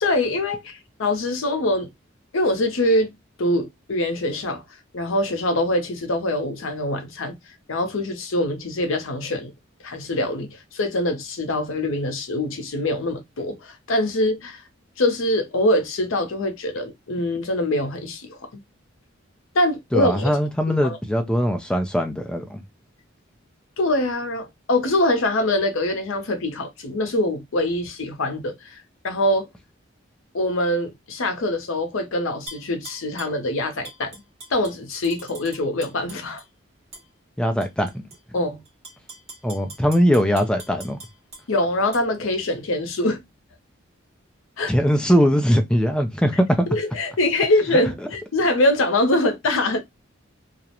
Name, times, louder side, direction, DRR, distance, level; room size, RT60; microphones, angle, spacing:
voice 1, 0.0-1.9 2.3-3.1 3.4-4.6 4.9-7.3 7.7-9.5 9.8-14.6 15.0-18.4 19.5-20.2 20.7-21.0 23.8-29.5 30.3-34.2 34.5-36.4 38.3-38.6 41.5-43.2 44.6-44.7 46.7-49.8, left 1 dB, 75° left, 0.6 m, -24 dB
voice 2, 19.9-22.6 37.4-38.0 39.4-41.0 44.7-46.7, equal, 5° left, 0.3 m, -20 dB
Tap / Glass, 32.5-33.4 33.8-36.5 36.9-37.1 37.6-38.2 38.7-41.4 41.9-42.0, right 2 dB, 30° right, 1.1 m, -42 dB
2.3 x 2.0 x 2.8 m
head